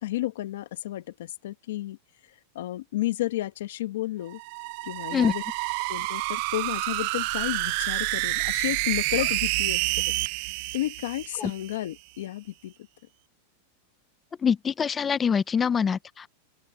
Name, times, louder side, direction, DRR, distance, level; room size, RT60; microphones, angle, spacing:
voice 1, 0.0-2.0 2.5-4.4 4.8-5.4 5.9-10.1 10.7-12.7, left 15 dB, 75° left, 1.4 m, -32 dB
sound 1, 4.3-11.8, right 24 dB, 45° right, 0.5 m, -28 dB
voice 2, 14.4-16.3, left 7 dB, 15° left, 0.6 m, -24 dB
open air
supercardioid pair, 165°, 0 cm